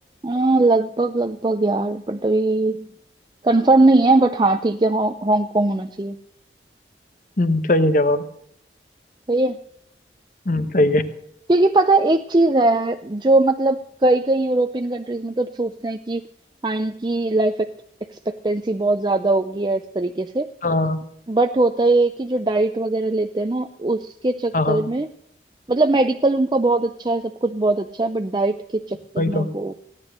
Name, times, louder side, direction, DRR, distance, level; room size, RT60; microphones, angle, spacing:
voice 1, 0.2-2.9 3.4-6.2 9.3-9.6 11.5-16.2 16.6-17.7 18.1-20.5 21.3-25.1 25.7-29.7, right 2 dB, 25° right, 8 dB, 0.5 m, -20 dB
voice 2, 7.4-8.2 10.5-11.0 20.6-21.0 24.5-24.8 29.2-29.5, left 1 dB, 45° left, 11 dB, 1.1 m, -19 dB
16.5 x 10.0 x 6.6 m, 0.71 s
head